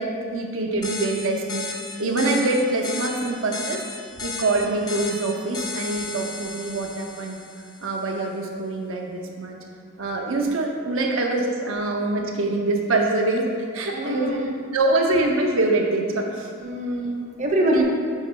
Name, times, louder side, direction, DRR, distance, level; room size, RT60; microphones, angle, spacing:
voice 1, 0.0-1.6 2.0-3.8 4.2-7.4 7.8-9.6 10.0-14.4 14.7-16.5 17.7-17.8, right 2 dB, 75° right, 1 dB, 0.6 m, -24 dB
sound 1, 0.8-8.0, left 4 dB, 20° left, 0.4 m, -35 dB
voice 2, 13.9-14.5 16.6-17.8, right 1 dB, 35° right, 0 dB, 0.6 m, -24 dB
5.3 x 5.0 x 3.7 m, 2.1 s
head